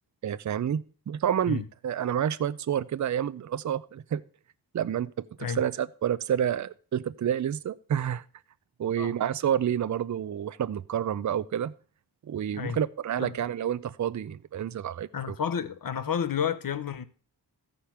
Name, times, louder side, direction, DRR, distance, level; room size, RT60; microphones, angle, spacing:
voice 1, 0.2-4.2 4.7-8.2 8.8-11.7 12.3-15.3, right 9 dB, 45° right, 0.5 m, -29 dB
voice 2, 15.1-17.0, left 7 dB, 55° left, 0.8 m, -30 dB
15.0 x 5.1 x 5.7 m
wide cardioid pair, 120°, 40 cm